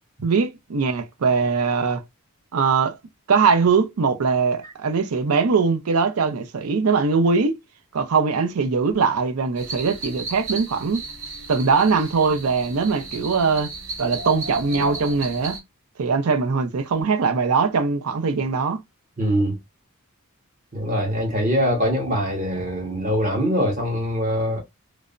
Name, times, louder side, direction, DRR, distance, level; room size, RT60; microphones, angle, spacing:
voice 1, 0.2-2.0 2.5-3.0 3.3-7.6 7.9-11.0 11.5-13.7 14.0-15.6 16.0-18.8, right 5 dB, 85° right, 0.5 m, -21 dB
sound 1, 9.6-15.6, right 3 dB, 60° right, 0.8 m, -34 dB
voice 2, 19.2-19.6 20.7-24.6, equal, 35° right, 1.0 m, -23 dB
3.2 x 2.0 x 2.4 m
head